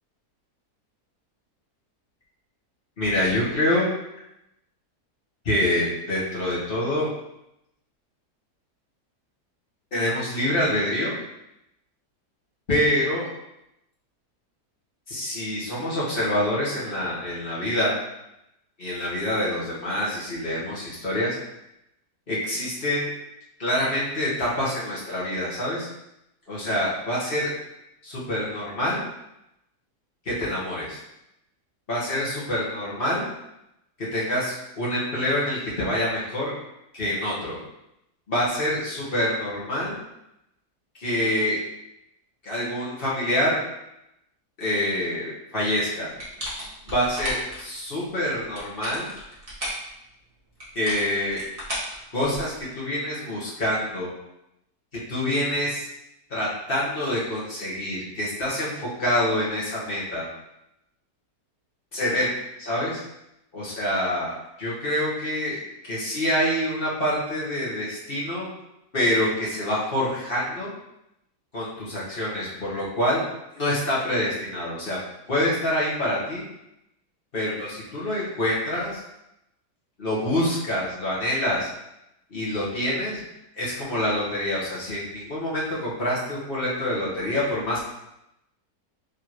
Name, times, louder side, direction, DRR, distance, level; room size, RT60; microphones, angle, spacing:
voice 1, 3.0-3.9 5.4-7.1 9.9-11.2 12.7-13.3 15.1-18.0 18.8-21.4 22.3-23.1 23.6-25.9 26.5-27.5 28.0-29.0 30.2-31.0 31.9-33.3 34.1-36.5 36.9-37.6 38.3-40.0 41.0-41.6 42.4-43.6 44.6-46.1 46.9-49.1 50.7-51.4 52.1-54.1 55.1-55.9 56.3-60.2 61.9-62.3 62.6-63.0 63.5-68.5 68.9-70.7 71.5-73.2 73.5-75.0 75.3-76.4 77.3-79.0 80.0-81.7 82.3-83.2 83.6-87.8, left 1 dB, 35° left, -7 dB, 1.6 m, -26 dB
sound 1, 46.2-47.6 48.4-49.9 50.6-52.6, equal, 20° right, 1.5 m, -34 dB
5.1 x 3.3 x 3.0 m, 0.85 s
omnidirectional pair, 1.7 m